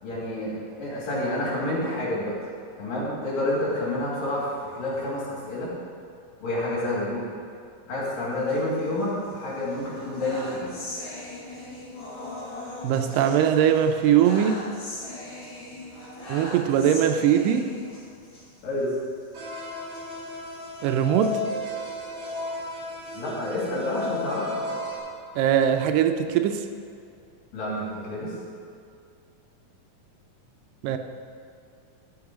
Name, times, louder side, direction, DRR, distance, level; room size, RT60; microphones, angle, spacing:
voice 1, 0.0-2.4 2.8-5.7 6.4-7.3 7.9-10.8 18.6-18.9 23.1-24.7 27.5-28.3, left 1 dB, 75° left, -6 dB, 4.4 m, -29 dB
sound 1, 8.3-9.3 9.7-18.4 18.8-19.0 19.2-19.3 19.9-22.4 22.9-24.3, left 1 dB, 55° left, 4.1 m, -40 dB
voice 2, 12.8-14.6 16.3-17.7 20.8-21.4 25.4-26.7 30.8-31.0, right 9 dB, 80° right, 7 dB, 2.2 m, -21 dB
sound 2, 19.3-25.0, left 2 dB, 40° right, 3.0 m, -34 dB
12.0 x 7.2 x 5.1 m, 2.4 s
omnidirectional pair, 4.0 m